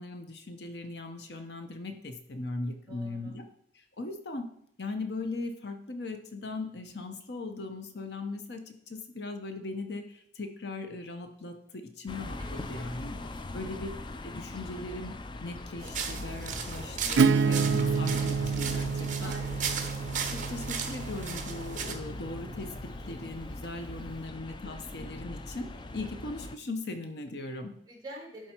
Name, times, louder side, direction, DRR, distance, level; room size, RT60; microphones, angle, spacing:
voice 1, 0.0-3.5 3.7-4.4 4.8-13.1 13.5-13.9 14.2-19.3 20.3-25.7 25.9-27.7, left 2 dB, 60° left, 6 dB, 0.9 m, -39 dB
voice 2, 2.9-3.4 12.4-12.9 19.2-19.8 27.9-28.5, right 1 dB, 20° right, -1 dB, 2.6 m, -46 dB
sound 1, 12.1-26.6, left 2 dB, 25° left, 0.4 m, -41 dB
sound 2, 15.8-21.9, right 6 dB, 40° right, 1.0 m, -37 dB
Acoustic guitar / Strum, 17.2-22.7, right 5 dB, 80° right, 0.4 m, -29 dB
11.0 x 4.5 x 4.5 m, 0.70 s
head